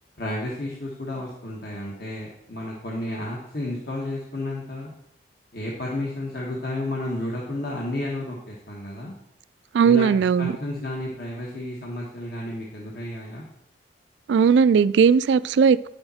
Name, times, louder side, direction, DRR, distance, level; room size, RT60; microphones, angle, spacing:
voice 1, 0.2-4.9 5.5-9.1 9.8-13.4, left 1 dB, 55° left, 1.3 m, -32 dB
voice 2, 9.7-10.5 14.3-15.9, right 6 dB, 80° right, 0.3 m, -18 dB
9.5 x 6.7 x 4.3 m
head